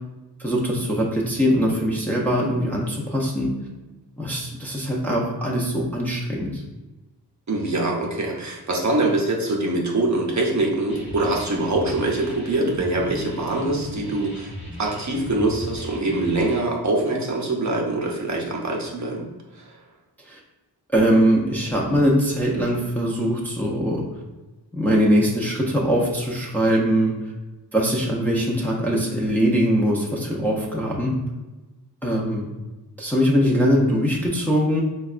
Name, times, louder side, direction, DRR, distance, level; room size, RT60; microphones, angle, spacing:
voice 1, 0.4-3.5 4.2-6.6 20.3-20.4 20.9-24.0 24.7-27.1 27.7-31.1 32.0-32.5 33.0-34.8, equal, 5° left, -4 dB, 0.5 m, -21 dB
voice 2, 7.5-14.5 14.8-19.3 19.5-19.8, right 2 dB, 45° right, -1 dB, 0.7 m, -24 dB
sound 1, 10.9-16.6, left 1 dB, 25° left, 1.0 m, -37 dB
3.9 x 2.2 x 2.4 m, 1.1 s
wide cardioid pair, 85°, 40 cm